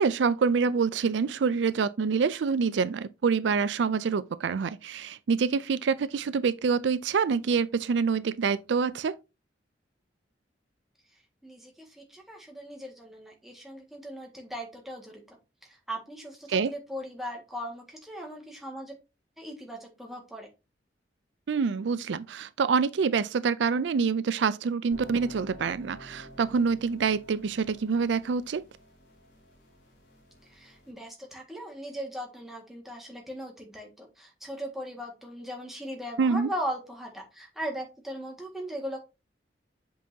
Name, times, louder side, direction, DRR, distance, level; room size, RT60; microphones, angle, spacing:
voice 1, 0.0-9.2 16.5-16.7 21.5-28.6 36.2-36.5, right 5 dB, 75° right, 0.4 m, -26 dB
voice 2, 11.4-15.4 15.6-18.9 19.4-20.5 30.5-39.0, equal, ahead, 1.8 m, -38 dB
sound 1, 24.9-30.9, equal, 80° left, 2.8 m, -51 dB
7.6 x 5.5 x 2.8 m
head